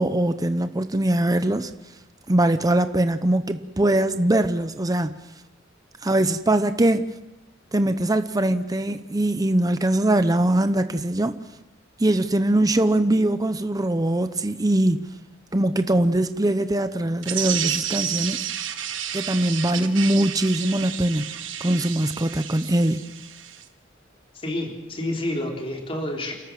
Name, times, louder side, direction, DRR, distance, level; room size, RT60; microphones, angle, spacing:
voice 1, 0.0-1.7 2.3-5.1 6.0-7.1 7.7-11.4 12.0-15.0 15.5-18.4 19.1-21.2 21.6-23.0, right 1 dB, 20° right, 0.8 m, -22 dB
sound 1, 17.2-23.6, right 10 dB, 75° right, 1.6 m, -31 dB
voice 2, 24.3-26.3, left 1 dB, 30° left, 3.8 m, -29 dB
29.5 x 13.5 x 7.5 m
head